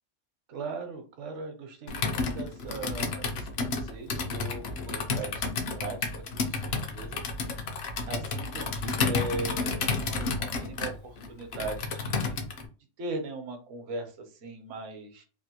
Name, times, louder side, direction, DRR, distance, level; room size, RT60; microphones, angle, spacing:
voice 1, 0.5-6.0 6.4-7.2 8.0-12.4 13.0-15.2, right 3 dB, 70° right, 5 dB, 1.0 m, -39 dB
Computer keyboard, 1.9-12.7, left 4 dB, 65° left, 0.8 m, -31 dB
3.0 x 2.4 x 2.8 m, 0.35 s
omnidirectional pair, 1.3 m